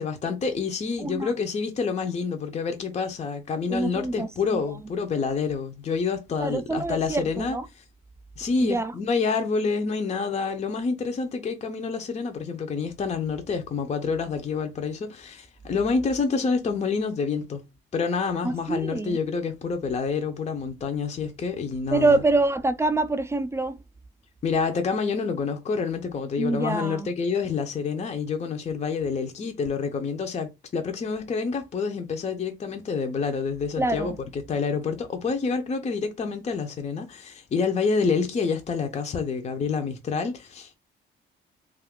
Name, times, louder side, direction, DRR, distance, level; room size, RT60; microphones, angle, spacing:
voice 1, 0.0-7.6 8.4-17.6 17.9-22.2 24.4-40.8, left 5 dB, 35° left, 0.5 m, -28 dB
voice 2, 1.0-1.3 3.7-4.6 6.4-7.7 8.6-8.9 18.4-19.2 21.9-23.8 26.4-27.1 33.8-34.2, right 2 dB, 15° right, 0.3 m, -25 dB
2.5 x 2.3 x 3.5 m
cardioid pair, 90°, 20 cm